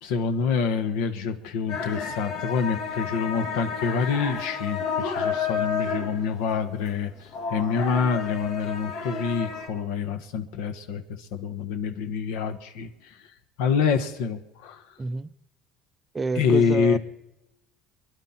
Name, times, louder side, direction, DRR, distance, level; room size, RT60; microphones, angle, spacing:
voice 1, 0.0-7.1 7.5-13.1 13.6-14.8 16.3-17.0, left 6 dB, 90° left, 1.4 m, -26 dB
sound 1, 1.7-9.7, left 6 dB, 75° left, 2.3 m, -31 dB
voice 2, 15.0-15.3 16.1-17.0, right 3 dB, 20° right, 0.5 m, -29 dB
24.5 x 11.0 x 4.4 m
cardioid pair, 145°, 0 cm